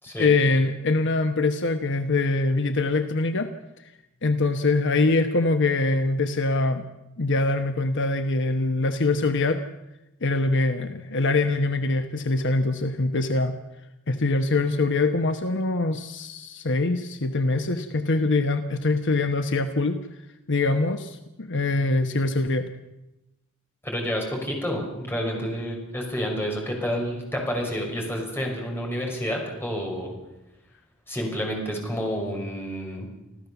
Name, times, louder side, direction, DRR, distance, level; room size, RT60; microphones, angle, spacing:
voice 1, 0.2-3.5 4.2-6.8 7.2-9.6 10.2-13.5 14.1-20.0 20.5-22.7, left 3 dB, 60° left, 7 dB, 1.1 m, -23 dB
voice 2, 23.8-30.1 31.1-33.1, equal, 10° left, 0 dB, 5.8 m, -29 dB
27.0 x 15.0 x 7.1 m, 0.94 s
head